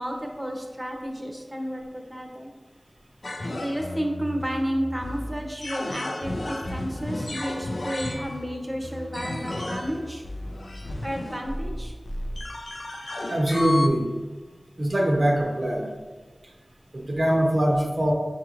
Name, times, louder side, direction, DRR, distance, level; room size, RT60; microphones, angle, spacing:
voice 1, 0.0-2.5 3.5-10.2 11.0-11.9, equal, 20° right, 2 dB, 0.7 m, -32 dB
sound 1, 3.2-13.9, left 1 dB, 70° left, 0.4 m, -33 dB
voice 2, 13.3-14.1 14.8-15.9 16.9-18.1, right 1 dB, 50° right, 0 dB, 0.7 m, -22 dB
5.7 x 2.5 x 2.9 m, 1.4 s
wide cardioid pair, 50°, 0 cm